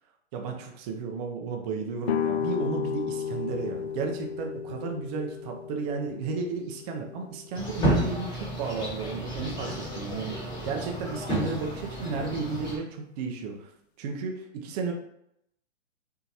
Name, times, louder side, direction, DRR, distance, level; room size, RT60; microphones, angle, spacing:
voice 1, 0.3-10.4 10.6-13.7 14.0-14.9, right 4 dB, 35° right, 2 dB, 0.7 m, -33 dB
sound 1, 2.0-7.8, left 8 dB, 60° left, 0.5 m, -33 dB
sound 2, 7.5-12.8, right 1 dB, 15° left, 1.4 m, -31 dB
5.7 x 2.9 x 2.8 m, 0.74 s
hypercardioid pair, 140°, 36 cm